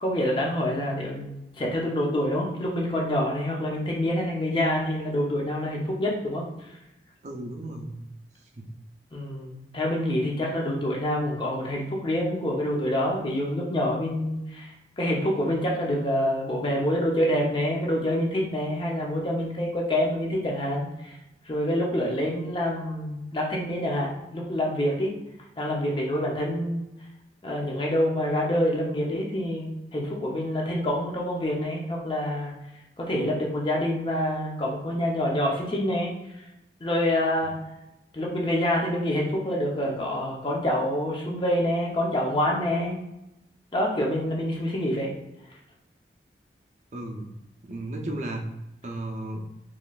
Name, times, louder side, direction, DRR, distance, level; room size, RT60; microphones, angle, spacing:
voice 1, 0.0-6.4 9.1-14.7 15.0-21.2 21.5-25.1 25.6-26.8 27.4-32.5 33.0-36.1 36.8-37.5 38.1-43.0 43.7-45.1, left 1 dB, 30° left, -2 dB, 0.7 m, -26 dB
voice 2, 7.2-8.0 8.6-8.7 46.9-47.3 47.7-48.4 48.8-49.4, right 1 dB, 40° right, 2 dB, 0.5 m, -34 dB
3.9 x 3.1 x 2.4 m, 0.91 s
head